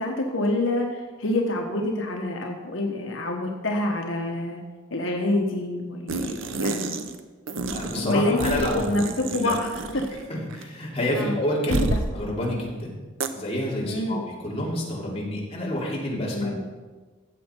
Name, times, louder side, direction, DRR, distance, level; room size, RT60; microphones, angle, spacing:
voice 1, 0.0-4.6 4.9-7.0 8.0-10.0 11.1-11.4 11.7-12.0 13.8-14.2 16.3-16.6, left 2 dB, 80° left, 1 dB, 1.2 m, -27 dB
sound 1, 6.1-7.2 7.5-10.3 10.5-10.6 11.7-12.1 13.2-13.3, right 3 dB, 85° right, 0.8 m, -29 dB
voice 2, 7.7-8.9 9.4-9.5 10.3-11.8 12.1-12.9 13.3-16.6, left 1 dB, 30° left, -4 dB, 2.9 m, -28 dB
15.5 x 7.8 x 4.5 m, 1.3 s
head